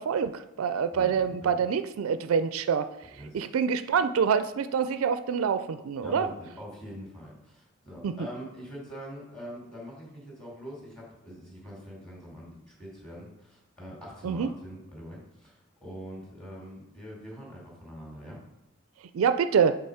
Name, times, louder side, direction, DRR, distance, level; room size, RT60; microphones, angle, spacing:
voice 1, 0.0-2.9 3.3-6.3 8.0-8.1 14.2-14.5 19.1-19.7, right 6 dB, 85° right, 11 dB, 0.4 m, -26 dB
voice 2, 0.9-1.5 3.1-3.4 6.0-18.4, equal, 5° left, -4 dB, 2.4 m, -43 dB
7.0 x 3.8 x 4.8 m, 0.91 s
head